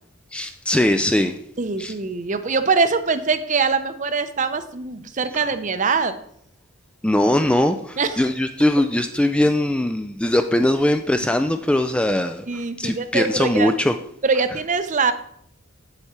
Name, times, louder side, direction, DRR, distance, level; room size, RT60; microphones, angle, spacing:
voice 1, 0.3-1.4 1.8-1.9 7.0-14.0, left 1 dB, 5° left, 7 dB, 0.3 m, -21 dB
voice 2, 1.6-6.1 8.0-8.3 12.5-13.7 14.2-15.1, right 4 dB, 35° right, 11 dB, 0.6 m, -23 dB
8.1 x 7.8 x 4.3 m, 0.68 s
head